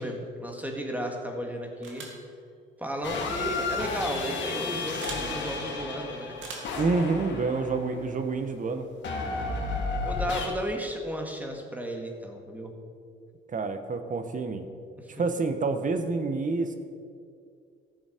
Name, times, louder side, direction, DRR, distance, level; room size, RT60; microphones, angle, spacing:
voice 1, 0.0-2.1 2.8-6.4 10.0-12.7 15.0-15.1, equal, 10° right, 2 dB, 1.9 m, -34 dB
sound 1, 1.8-2.3 3.6-3.7 5.0-5.3 6.4-6.8, right 4 dB, 75° right, 2.1 m, -40 dB
sound 2, 3.0-8.2 9.0-10.5, left 3 dB, 70° left, 2.0 m, -32 dB
voice 2, 6.8-8.9 13.5-14.7 15.1-16.8, right 3 dB, 40° right, 8 dB, 1.1 m, -28 dB
14.0 x 7.1 x 5.1 m, 2.3 s
cardioid pair, 90°, 20 cm